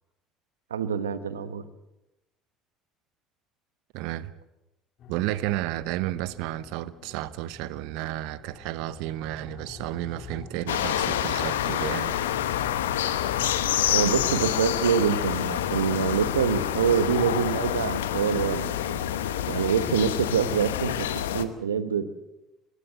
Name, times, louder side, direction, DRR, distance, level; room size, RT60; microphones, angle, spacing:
voice 1, 0.7-1.6 13.9-19.0 19.5-20.9 21.3-22.0, right 7 dB, 90° right, 1.1 m, -25 dB
voice 2, 3.9-4.3 5.1-12.1, right 15 dB, 70° right, 0.8 m, -32 dB
sound 1, 5.0-19.6, left 5 dB, 55° left, 2.5 m, -47 dB
sound 2, 10.7-21.4, left 11 dB, 85° left, 1.0 m, -27 dB
21.5 x 16.5 x 7.8 m
hypercardioid pair, 65°, 0 cm